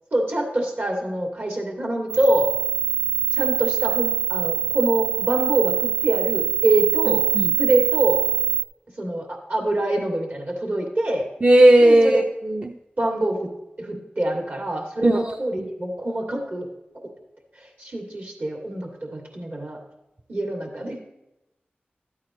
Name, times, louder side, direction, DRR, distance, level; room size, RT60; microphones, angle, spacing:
voice 1, 0.1-2.5 3.3-7.3 7.6-8.2 9.0-11.3 11.8-12.2 13.0-13.5 13.8-16.7 16.9-17.1 17.6-19.8 20.3-21.0, right 1 dB, 60° right, 1 dB, 2.5 m, -25 dB
sound 1, 2.1-8.6, right 9 dB, 85° right, 0.6 m, -23 dB
voice 2, 11.4-12.2 12.5-12.6 15.0-15.2, right 1 dB, 35° right, 4 dB, 0.6 m, -14 dB
13.0 x 8.7 x 3.1 m, 0.93 s
cardioid pair, 40°, 4 cm